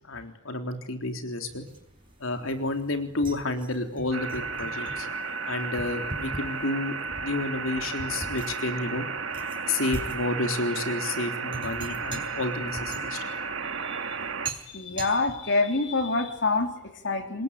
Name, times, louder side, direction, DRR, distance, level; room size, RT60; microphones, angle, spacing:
voice 1, 0.1-1.6 2.2-5.1 5.5-9.1 9.7-13.3, left 2 dB, 75° left, 5 dB, 3.7 m, -30 dB
sound 1, 1.5-16.7, right 2 dB, 25° right, 5.6 m, -42 dB
sound 2, 4.1-14.5, right 4 dB, 70° right, 2.0 m, -33 dB
voice 2, 14.7-17.4, left 3 dB, 60° left, 6 dB, 3.4 m, -26 dB
26.5 x 21.5 x 10.0 m, 0.76 s
head